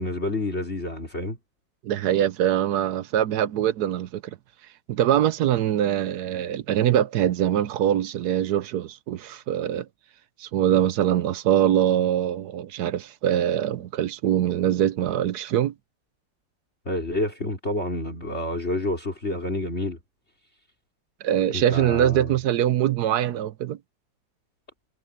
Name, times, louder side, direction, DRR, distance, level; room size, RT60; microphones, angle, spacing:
voice 1, 0.0-1.4 16.9-20.0 21.5-22.3, left 1 dB, 35° left, 4.2 m, -29 dB
voice 2, 1.8-4.2 4.9-9.9 10.4-15.7 21.2-23.8, right 11 dB, 65° right, 1.2 m, -23 dB
omnidirectional pair, 2.1 m